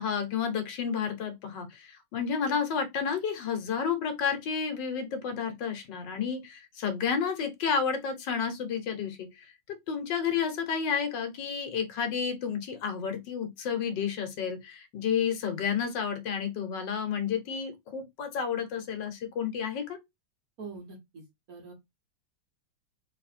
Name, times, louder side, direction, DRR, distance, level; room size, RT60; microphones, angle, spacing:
voice 1, 0.0-20.0, left 6 dB, 75° left, 1.6 m, -31 dB
voice 2, 20.6-21.7, right 4 dB, 50° right, 1.6 m, -44 dB
3.4 x 3.3 x 4.2 m
omnidirectional pair, 2.0 m